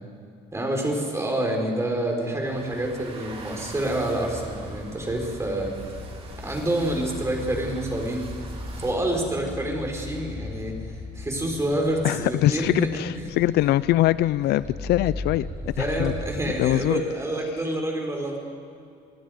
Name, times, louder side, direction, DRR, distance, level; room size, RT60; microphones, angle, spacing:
voice 1, 0.5-5.7 6.4-8.3 8.8-10.7 11.1-12.9 13.2-13.3 15.8-18.4, right 1 dB, 15° right, 1 dB, 4.7 m, -27 dB
sound 1, 2.4-8.9, right 2 dB, 35° right, 3.6 m, -43 dB
sound 2, 4.2-16.6, left 3 dB, 20° left, 6.1 m, -38 dB
voice 2, 12.0-15.5 15.8-16.1 16.6-17.0, left 15 dB, 75° left, 18 dB, 0.5 m, -22 dB
27.5 x 19.0 x 5.2 m, 2.4 s
cardioid pair, 110°, 17 cm